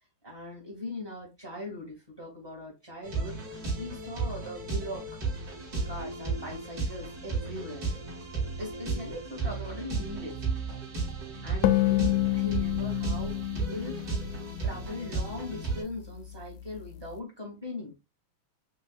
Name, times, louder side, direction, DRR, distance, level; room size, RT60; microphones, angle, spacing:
voice 1, 0.2-5.2 5.8-7.9 8.6-10.4 11.4-14.0 14.6-18.0, left 2 dB, 10° right, 1.3 m, -40 dB
sound 1, 3.0-15.8, right 4 dB, 35° right, 2.2 m, -34 dB
sound 2, 11.6-15.1, left 16 dB, 80° left, 1.9 m, -28 dB
5.6 x 3.1 x 2.4 m
omnidirectional pair, 3.5 m